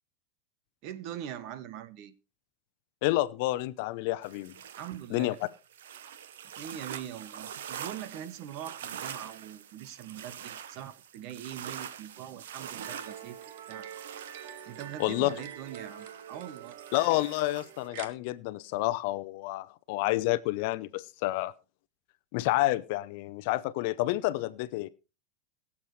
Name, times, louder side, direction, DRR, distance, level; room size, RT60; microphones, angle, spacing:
voice 1, 0.8-2.1 4.8-5.4 6.6-13.9 14.6-16.7, right 10 dB, 50° right, 1.1 m, -42 dB
voice 2, 3.0-4.5 5.1-5.3 15.0-15.3 16.9-21.5 22.3-24.9, left 18 dB, 60° left, 0.7 m, -29 dB
sound 1, 4.2-17.9, right 9 dB, 90° right, 1.0 m, -45 dB
sound 2, 12.8-18.1, right 9 dB, 65° right, 1.5 m, -45 dB
22.0 x 7.3 x 3.2 m
supercardioid pair, 140°, 0 cm